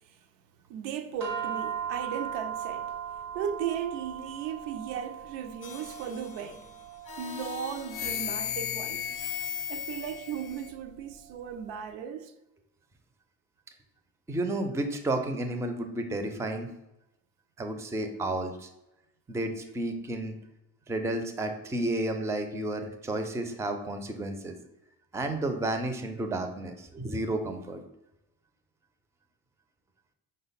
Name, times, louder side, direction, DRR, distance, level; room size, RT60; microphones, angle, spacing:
voice 1, 0.7-3.0 3.3-6.7 7.2-9.1 9.7-12.3, right 8 dB, 70° right, 0.5 m, -36 dB
sound 1, 1.2-11.7, right 8 dB, 85° right, 1.1 m, -39 dB
sound 2, 5.6-6.6 7.1-10.7, left 9 dB, 45° left, 0.5 m, -36 dB
voice 2, 14.3-16.7 17.6-18.7 19.3-20.4 20.9-24.5 25.1-27.8, right 1 dB, 5° right, 0.4 m, -32 dB
5.1 x 2.2 x 3.9 m
hypercardioid pair, 55°, 45 cm